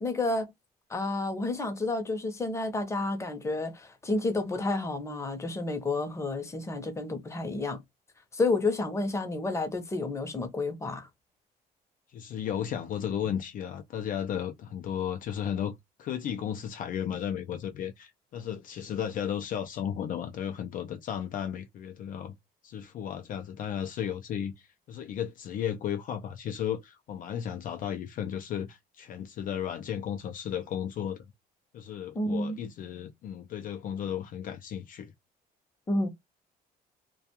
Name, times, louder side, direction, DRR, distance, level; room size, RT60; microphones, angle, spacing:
voice 1, 0.0-0.5 0.9-7.8 8.3-11.1 32.1-32.6 35.9-36.1, left 2 dB, 15° left, 0.7 m, -30 dB
voice 2, 12.1-22.3 22.6-31.3 31.7-35.1, left 9 dB, 55° left, 0.4 m, -34 dB
2.3 x 2.2 x 2.8 m
cardioid pair, 110°, 17 cm